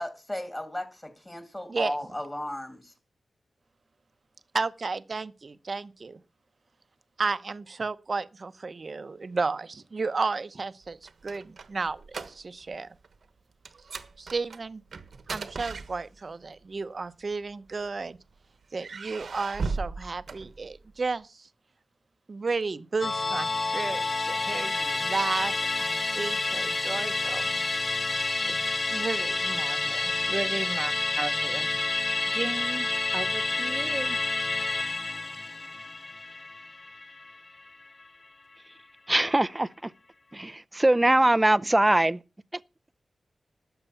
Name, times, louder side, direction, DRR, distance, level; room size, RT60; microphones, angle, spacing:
voice 1, 0.0-2.9, left 1 dB, 20° left, 2.6 m, -35 dB
voice 2, 4.5-6.2 7.2-11.0 11.2-12.9 14.2-14.8 15.3-18.2 18.7-21.5 22.3-27.5 28.5-31.8 32.3-32.9 33.1-34.2, right 4 dB, 50° right, 0.9 m, -33 dB
sound 1, 10.9-12.8 13.0-13.3 13.7-16.4 17.3-18.2 18.7-21.0, right 4 dB, 75° right, 1.3 m, -37 dB
Musical instrument, 23.0-37.7 38.0-38.1, left 3 dB, 40° left, 0.6 m, -29 dB
voice 3, 39.1-39.7 40.3-42.2, right 1 dB, 15° right, 0.6 m, -22 dB
13.0 x 8.0 x 7.1 m
wide cardioid pair, 90°, 0 cm